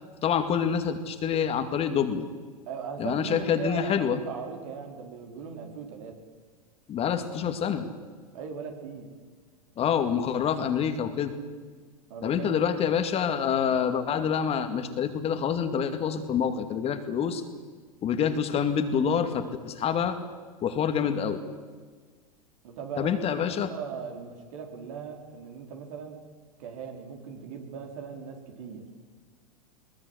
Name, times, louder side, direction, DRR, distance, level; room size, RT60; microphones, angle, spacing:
voice 1, 0.2-2.3 3.0-4.2 6.9-7.9 9.8-11.3 12.2-17.4 18.0-20.2 20.6-21.4 23.0-23.7, left 7 dB, 30° left, 8 dB, 2.3 m, -27 dB
voice 2, 2.7-6.1 8.3-9.1 12.1-12.9 22.6-23.2 23.5-26.2 26.6-28.8, right 6 dB, 60° right, 3 dB, 4.6 m, -39 dB
21.0 x 21.0 x 8.2 m, 1.5 s
hypercardioid pair, 95°, 19 cm